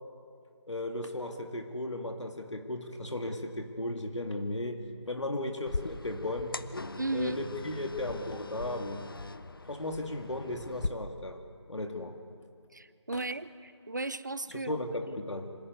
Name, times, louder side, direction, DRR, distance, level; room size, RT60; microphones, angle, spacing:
voice 1, 0.7-6.6 7.1-9.1 9.7-11.4 11.7-12.2 13.1-13.2 14.5-15.6, left 1 dB, 80° left, 4 dB, 2.1 m, -36 dB
sound 1, 5.7-10.9, left 2 dB, 50° left, 0.8 m, -40 dB
voice 2, 7.0-7.4 12.7-14.8 15.1-15.2, right 2 dB, 40° right, 15 dB, 0.7 m, -35 dB
25.5 x 17.5 x 9.4 m, 2.4 s
figure-of-eight pair, 175°, 15 cm